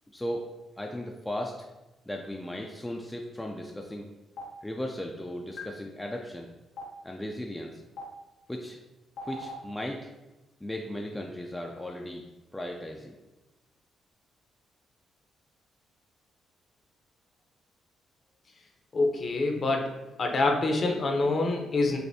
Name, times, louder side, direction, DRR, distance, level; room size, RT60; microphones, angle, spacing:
voice 1, 0.1-1.7 2.1-4.1 4.6-6.5 7.0-7.8 8.5-8.8 9.2-10.1 10.6-13.2, left 1 dB, 10° left, 1 dB, 0.3 m, -36 dB
Stream, 4.4-4.5 5.6-5.7 6.8-6.9 8.0-8.1 9.2-9.5, left 4 dB, 90° left, 0.9 m, -37 dB
voice 2, 18.9-19.9 20.2-22.0, left 2 dB, 40° left, 3 dB, 0.7 m, -26 dB
6.5 x 2.6 x 2.7 m, 1.0 s
cardioid pair, 125°, 0 cm